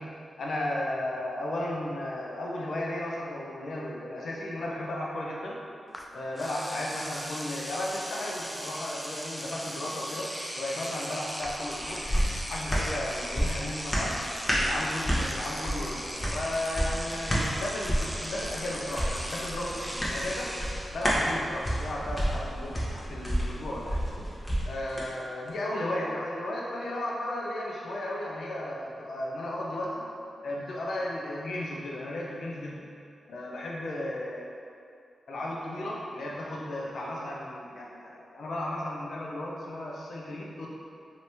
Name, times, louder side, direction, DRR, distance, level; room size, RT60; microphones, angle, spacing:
voice 1, 0.0-5.6 6.1-12.1 12.5-14.2 14.5-20.5 20.9-24.0 24.6-30.0 30.4-32.8 33.3-34.5 35.3-40.7, left 1 dB, 75° left, -3 dB, 0.5 m, -34 dB
Engine / Domestic sounds home sounds, 5.9-6.1 6.4-21.0, equal, ahead, 0.4 m, -38 dB
sound 1, 11.4-25.1 25.5-25.6, equal, 25° left, 0.9 m, -31 dB
2.8 x 2.7 x 3.3 m, 2.5 s
cardioid pair, 45°, 0 cm